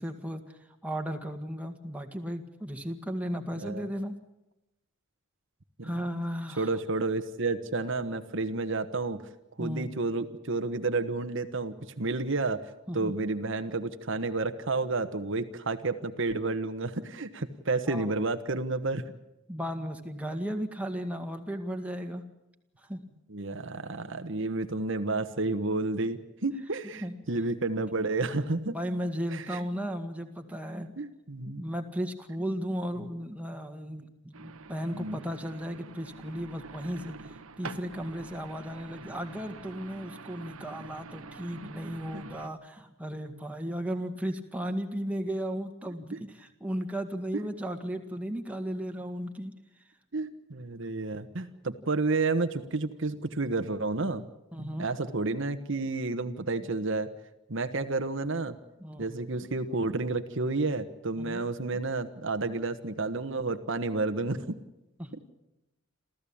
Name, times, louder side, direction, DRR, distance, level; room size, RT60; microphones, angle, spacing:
voice 1, 0.0-4.2 5.8-6.8 9.6-9.9 12.9-13.1 17.9-18.1 19.5-22.2 22.8-23.0 27.0-27.1 28.7-31.0 31.5-49.5 54.5-54.9 58.8-59.5 61.2-61.4 65.0-65.1, equal, 5° right, 3 dB, 2.0 m, -35 dB
voice 2, 3.5-3.9 5.8-5.9 6.6-9.2 9.6-19.0 23.3-28.7 29.3-29.6 31.0-31.6 33.0-33.1 34.9-35.2 41.6-41.7 42.1-42.2 50.1-54.2 54.6-57.1 57.5-58.6 59.0-64.6, right 3 dB, 60° right, 8 dB, 1.3 m, -31 dB
sound 1, 34.3-42.5, right 4 dB, 80° right, 1.2 m, -46 dB
28.0 x 14.5 x 8.7 m, 0.93 s
head